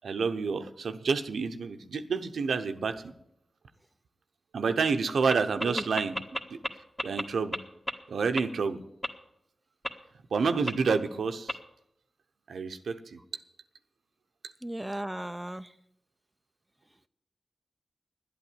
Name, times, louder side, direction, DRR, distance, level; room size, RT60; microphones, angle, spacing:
voice 1, 0.0-3.1 4.5-6.1 6.5-6.6 7.0-7.6 8.1-8.8 10.3-11.5 12.5-13.0, right 5 dB, 85° right, 8 dB, 0.8 m, -29 dB
sound 1, 5.3-5.4 5.6-6.7 7.0-7.2 7.5-7.6 7.9-8.0 8.4-8.5 9.0-9.1 9.8-9.9 10.7-10.8 11.5-11.6, equal, 10° left, 1.6 m, -30 dB
voice 2, 14.6-15.7, right 1 dB, 10° right, 10 dB, 0.6 m, -35 dB
11.5 x 8.6 x 9.2 m, 0.77 s
cardioid pair, 50°, 0 cm